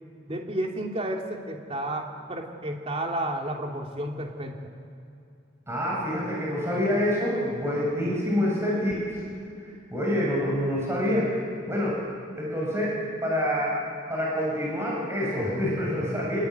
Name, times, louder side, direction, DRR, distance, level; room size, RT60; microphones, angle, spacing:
voice 1, 0.3-4.6, right 1 dB, 30° right, 1 dB, 2.9 m, -31 dB
voice 2, 5.7-9.0 9.9-11.3 11.7-12.0 12.4-13.0 13.2-13.8 14.1-16.4, equal, 15° right, -5 dB, 7.2 m, -26 dB
27.0 x 22.0 x 9.5 m, 2.6 s
head